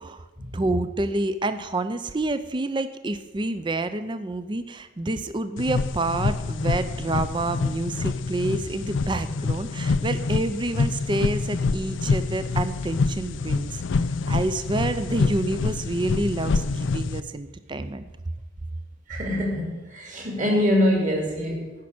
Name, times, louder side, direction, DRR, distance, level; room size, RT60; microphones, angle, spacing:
voice 1, 0.5-13.8 14.3-18.1, right 2 dB, 25° right, 11 dB, 0.4 m, -28 dB
sound 1, 5.6-17.2, left 4 dB, 75° left, 0.5 m, -26 dB
voice 2, 19.1-21.7, left 1 dB, 40° right, 0 dB, 2.5 m, -24 dB
10.5 x 6.2 x 8.6 m, 1.1 s
head